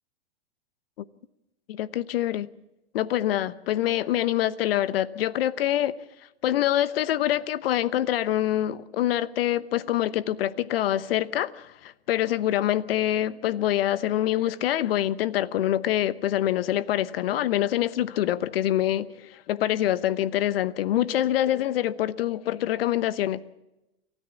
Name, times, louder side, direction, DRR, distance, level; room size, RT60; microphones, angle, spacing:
voice 1, 1.7-2.5 2.9-5.9 6.4-23.4, left 12 dB, 70° left, 1.0 m, -25 dB
28.0 x 13.5 x 7.2 m
hypercardioid pair, 105°, 31 cm